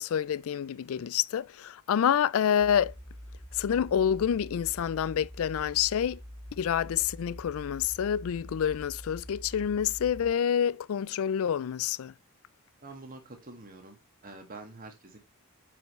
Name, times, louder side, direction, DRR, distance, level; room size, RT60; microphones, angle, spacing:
voice 1, 0.0-2.9 3.5-6.2 6.6-12.1, left 8 dB, 65° left, 0.3 m, -28 dB
sound 1, 2.6-10.3, equal, 15° left, 3.6 m, -45 dB
voice 2, 12.8-14.0 14.2-15.2, right 2 dB, 40° right, 1.9 m, -46 dB
9.2 x 5.4 x 3.1 m
head